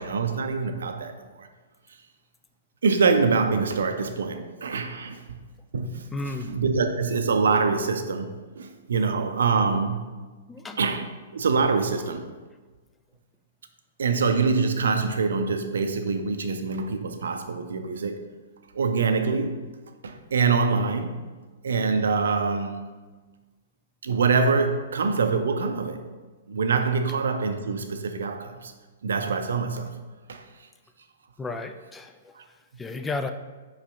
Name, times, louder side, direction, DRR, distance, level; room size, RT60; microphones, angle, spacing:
voice 1, 0.0-1.5 2.8-5.4 5.7-6.0 6.5-8.3 8.6-10.2 10.8-12.3 14.0-18.3 18.7-19.6 20.0-21.2 21.6-22.9 24.0-26.1 26.5-28.7 29.0-29.9 30.3-30.4 32.4-32.5, right 4 dB, 60° right, 7 dB, 0.5 m, -25 dB
voice 2, 6.1-6.5 10.5-10.8 31.4-32.3 32.8-33.3, left 3 dB, 10° left, 8 dB, 0.4 m, -33 dB
5.4 x 5.0 x 3.5 m, 1.3 s
figure-of-eight pair, 110°, 0 cm